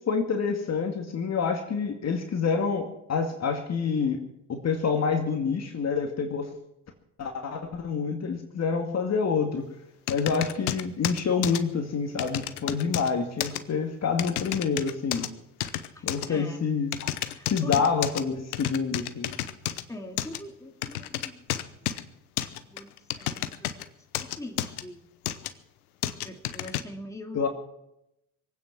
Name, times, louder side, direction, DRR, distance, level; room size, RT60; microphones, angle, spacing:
voice 1, 0.1-4.2 4.5-6.5 7.2-9.6 10.1-15.3 16.0-17.0 17.5-19.4 27.3-27.5, left 5 dB, 35° left, 4 dB, 2.2 m, -27 dB
sound 1, 10.1-11.6 12.2-13.1 13.4-13.6 14.2-15.3 15.6-16.3 16.9-18.2 18.5-19.8 20.2-20.4 20.8-22.0 22.4-23.8 24.1-24.8 25.2-25.5 26.0-26.8, left 12 dB, 85° left, 1.0 m, -31 dB
voice 2, 15.9-16.7 17.3-17.8 19.9-21.4 22.4-22.9 23.2-25.1 26.2-27.5, left 1 dB, 5° left, 2 dB, 2.6 m, -43 dB
23.0 x 9.2 x 6.0 m, 0.83 s
hypercardioid pair, 70°, 44 cm